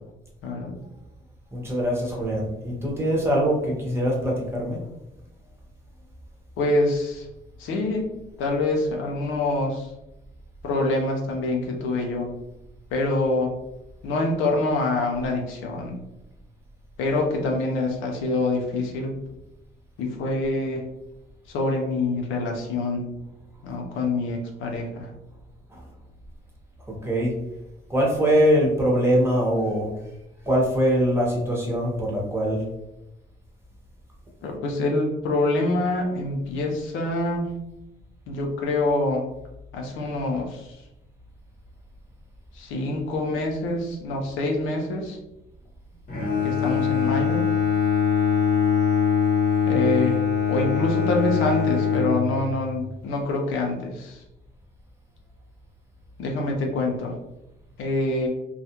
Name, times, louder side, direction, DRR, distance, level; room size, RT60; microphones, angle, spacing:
voice 1, 0.4-0.8 6.6-7.3 7.6-8.1 8.4-9.9 10.6-12.3 12.9-13.6 14.0-16.0 17.0-19.1 20.0-20.9 21.5-23.2 23.6-25.1 34.4-37.5 38.3-39.3 39.7-40.8 42.5-45.2 46.4-47.4 49.7-50.2 50.5-54.2 56.2-57.2 57.8-58.3, left 2 dB, 85° left, 1 dB, 0.6 m, -25 dB
voice 2, 1.5-4.8 25.7-25.8 27.0-27.3 27.9-29.9 30.5-32.6, equal, 10° right, -3 dB, 0.9 m, -22 dB
Bowed string instrument, 46.1-52.8, left 6 dB, 45° left, 0.9 m, -23 dB
2.3 x 2.1 x 2.8 m, 0.89 s
cardioid pair, 90°, 20 cm